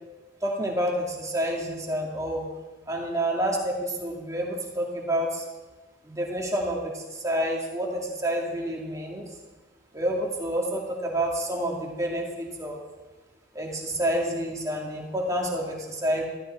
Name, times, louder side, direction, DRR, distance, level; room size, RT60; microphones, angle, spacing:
voice 1, 0.4-2.5 2.9-5.4 6.0-9.3 9.9-12.8 13.5-16.2, right 1 dB, 20° right, -2 dB, 2.3 m, -28 dB
14.5 x 13.0 x 4.4 m, 1.2 s
head